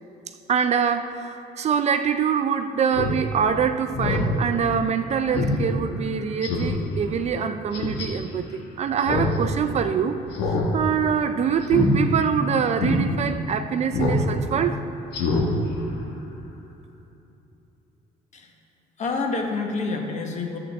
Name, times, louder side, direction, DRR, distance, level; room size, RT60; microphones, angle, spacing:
voice 1, 0.5-10.2 10.7-14.8, right 7 dB, 40° right, 9 dB, 0.4 m, -24 dB
Speech synthesizer, 2.9-3.1 3.5-3.6 3.9-4.3 4.7-4.8 5.3-5.5 5.9-6.0 6.4-6.8 7.7-8.1 9.0-9.4 9.6-9.7 10.3-10.7 10.9-11.2 11.6-11.9 12.3-12.4 12.8-13.0 13.9-14.2 14.5-14.7 15.1-15.4 15.8-15.9, left 2 dB, 75° left, 1.5 m, -24 dB
voice 2, 19.0-20.6, left 3 dB, 45° left, 2 dB, 1.2 m, -28 dB
11.0 x 7.7 x 3.5 m, 2.9 s
cardioid pair, 110°, 17 cm